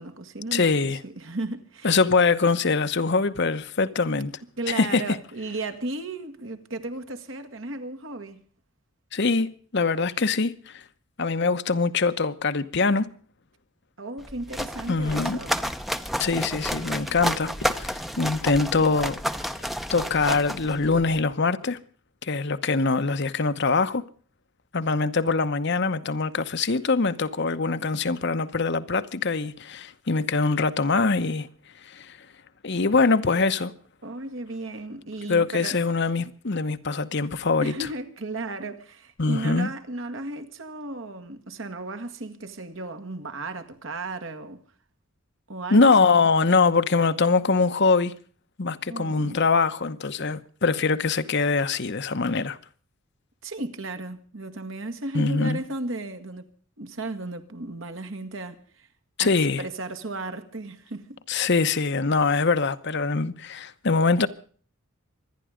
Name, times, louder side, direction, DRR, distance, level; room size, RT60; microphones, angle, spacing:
voice 1, 0.0-0.8 1.0-2.0 4.6-8.4 14.0-15.6 34.0-35.8 37.6-44.6 45.5-45.9 48.9-49.4 53.4-56.5 56.8-58.9 59.2-59.3 59.6-61.2, right 2 dB, 65° right, 1.8 m, -35 dB
voice 2, 0.5-1.0 1.8-4.3 4.7-5.2 9.1-10.8 11.2-13.1 14.9-15.4 16.2-19.2 19.9-21.8 22.2-24.0 24.7-31.5 31.8-32.2 32.6-33.7 35.3-37.7 39.2-39.7 45.7-48.1 48.6-52.6 55.1-55.6 59.2-59.6 61.3-64.3, left 4 dB, 55° left, 0.9 m, -23 dB
sound 1, 14.2-21.2, equal, ahead, 0.8 m, -31 dB
25.5 x 10.5 x 5.0 m
head